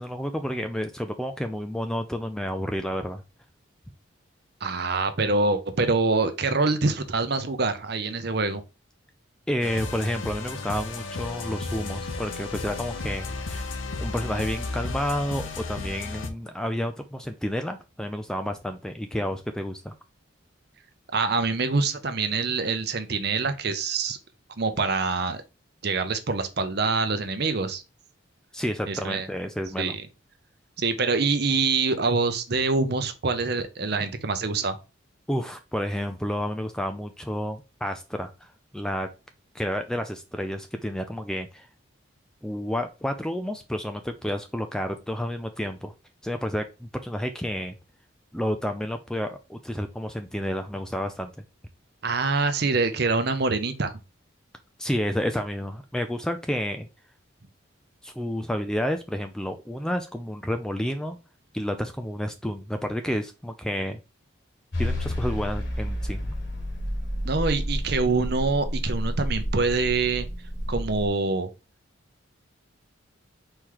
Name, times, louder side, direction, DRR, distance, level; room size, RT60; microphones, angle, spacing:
voice 1, 0.0-3.2 9.5-13.7 14.0-19.9 28.5-29.9 35.3-39.1 39.5-41.7 42.4-45.9 46.2-47.7 48.3-51.3 54.8-56.9 58.0-61.2 61.5-64.0 64.8-66.3, equal, 5° left, 0.4 m, -30 dB
voice 2, 4.6-8.6 21.1-24.2 24.6-25.4 25.8-27.8 28.9-29.3 29.8-30.0 30.8-34.8 52.0-54.0 67.2-70.3 70.7-71.5, right 3 dB, 55° right, 0.7 m, -25 dB
sound 1, 9.6-16.3, left 3 dB, 80° left, 0.8 m, -33 dB
sound 2, 64.7-71.1, equal, 60° left, 1.6 m, -30 dB
4.4 x 3.2 x 3.6 m
head